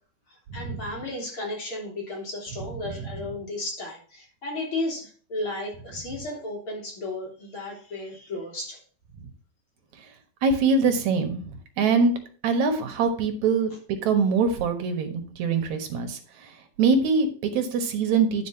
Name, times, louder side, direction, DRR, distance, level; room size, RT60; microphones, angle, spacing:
voice 1, 0.5-8.8, left 2 dB, 35° left, -1 dB, 3.5 m, -34 dB
voice 2, 10.4-11.5 11.8-12.1 12.4-16.5 16.8-18.5, right 4 dB, 60° right, 6 dB, 2.2 m, -23 dB
10.5 x 5.2 x 5.7 m, 0.41 s
omnidirectional pair, 4.4 m